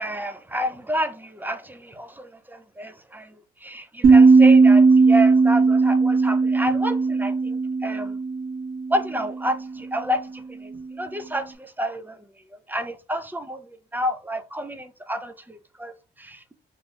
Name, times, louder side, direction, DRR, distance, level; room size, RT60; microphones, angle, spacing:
voice 1, 0.0-8.2 8.9-12.3 12.7-16.5, equal, 10° right, 0.5 m, -30 dB
sound 1, 4.0-9.2, right 4 dB, 50° right, 1.2 m, -17 dB
3.1 x 2.3 x 3.8 m
cardioid pair, 90°, 20 cm